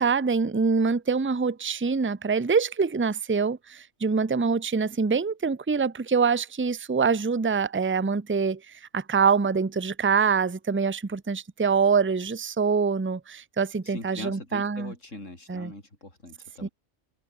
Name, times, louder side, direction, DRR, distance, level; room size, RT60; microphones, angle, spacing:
voice 1, 0.0-8.6 8.9-14.9 15.5-15.7 16.6-16.7, right 5 dB, 15° right, 0.4 m, -25 dB
voice 2, 13.8-16.7, left 2 dB, 75° left, 5.9 m, -41 dB
omnidirectional pair, 1.3 m